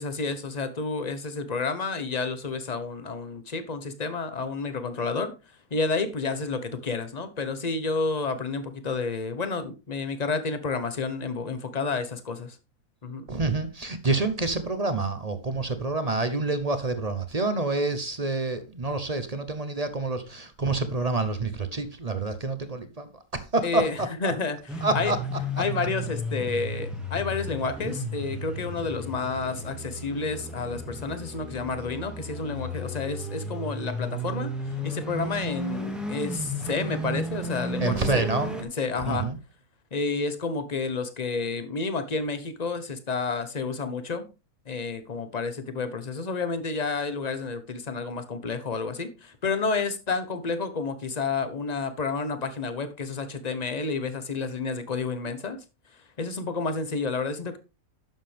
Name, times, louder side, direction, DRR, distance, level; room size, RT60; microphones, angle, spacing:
voice 1, 0.0-5.3 5.7-12.6 13.0-13.3 23.6-24.6 24.9-25.1 25.6-38.3 38.6-39.3 39.9-44.2 44.7-55.6 56.2-57.6, left 4 dB, 30° left, 1.1 m, -30 dB
voice 2, 13.3-23.9 24.8-25.2 37.8-38.6 39.0-39.4, right 3 dB, 35° right, 0.7 m, -27 dB
sound 1, 24.7-38.6, equal, ahead, 1.7 m, -34 dB
11.0 x 7.5 x 3.5 m
omnidirectional pair, 1.6 m